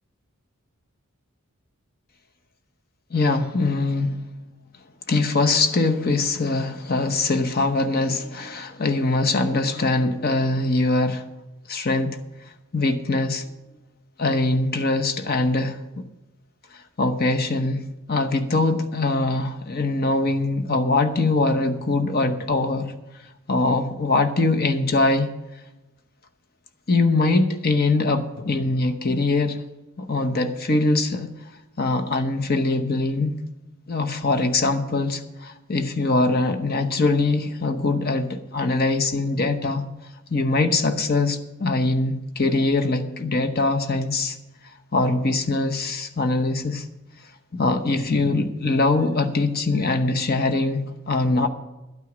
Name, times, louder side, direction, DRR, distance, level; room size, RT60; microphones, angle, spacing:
voice 1, 3.1-4.2 5.1-11.2 11.7-12.2 12.7-13.4 14.2-15.8 17.0-22.9 23.5-25.3 26.9-29.6 30.0-31.3 31.8-33.4 33.9-39.8 40.3-44.4 44.9-46.8 47.5-51.5, left 2 dB, 45° left, 0.9 m, -22 dB
12.0 x 9.1 x 6.1 m
head